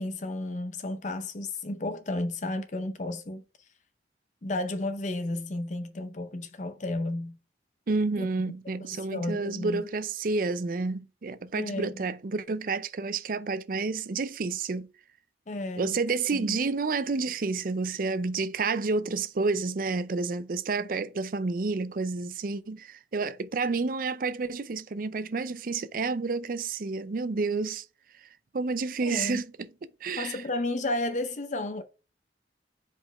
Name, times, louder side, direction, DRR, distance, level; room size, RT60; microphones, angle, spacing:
voice 1, 0.0-3.4 4.4-7.4 8.2-8.3 8.6-9.8 11.5-12.0 15.5-16.0 16.3-16.6 29.0-29.4 30.2-31.8, left 2 dB, 40° left, 0.6 m, -33 dB
voice 2, 7.9-14.9 15.8-27.9 28.2-28.3 28.5-29.7 30.0-30.4, right 4 dB, 50° right, 0.5 m, -30 dB
5.0 x 4.2 x 4.9 m
head